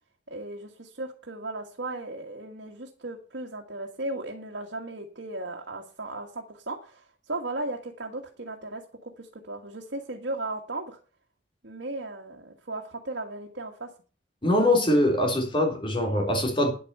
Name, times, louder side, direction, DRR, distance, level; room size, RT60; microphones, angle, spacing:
voice 1, 0.3-11.0 11.6-13.9, right 2 dB, 75° right, 1.7 m, -36 dB
voice 2, 14.4-16.7, left 1 dB, 30° left, 3.4 m, -23 dB
10.0 x 8.6 x 6.7 m
head